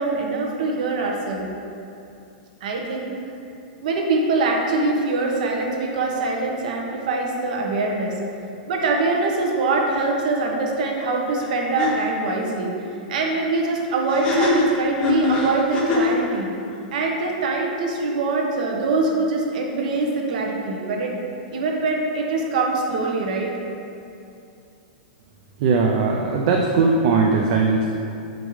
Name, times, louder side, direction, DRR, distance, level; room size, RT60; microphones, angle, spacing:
voice 1, 0.0-1.5 2.6-3.1 3.8-8.1 8.7-12.8 13.1-16.5 16.9-21.1 21.5-23.5, right 3 dB, 55° right, 0 dB, 1.1 m, -23 dB
sound 1, 11.4-11.5 11.8-11.9 14.1-16.2, left 2 dB, 20° left, 0.8 m, -22 dB
voice 2, 25.6-27.9, right 4 dB, 40° right, 0 dB, 0.5 m, -19 dB
7.4 x 5.2 x 3.2 m, 2.7 s
supercardioid pair, 170°, 5 cm